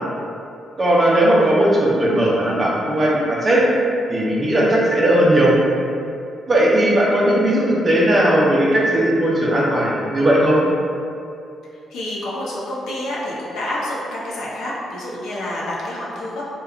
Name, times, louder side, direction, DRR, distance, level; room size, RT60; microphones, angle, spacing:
voice 1, 0.8-3.7 4.1-5.5 6.5-10.6, right 1 dB, 25° right, -4 dB, 0.5 m, -17 dB
voice 2, 11.9-16.5, left 1 dB, 85° left, -5 dB, 0.6 m, -28 dB
2.9 x 2.2 x 2.3 m, 2.5 s
cardioid pair, 130°, 0 cm